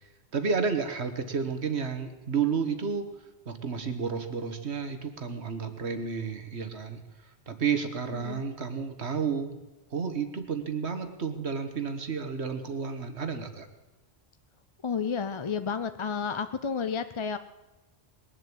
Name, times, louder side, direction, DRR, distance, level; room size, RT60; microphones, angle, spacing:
voice 1, 0.3-3.1 3.5-7.0 7.5-9.6 9.9-13.7, right 6 dB, 80° right, 8 dB, 1.7 m, -31 dB
voice 2, 14.8-17.4, left 6 dB, 40° left, 10 dB, 0.5 m, -31 dB
21.0 x 7.6 x 8.7 m, 1.1 s
omnidirectional pair, 1.1 m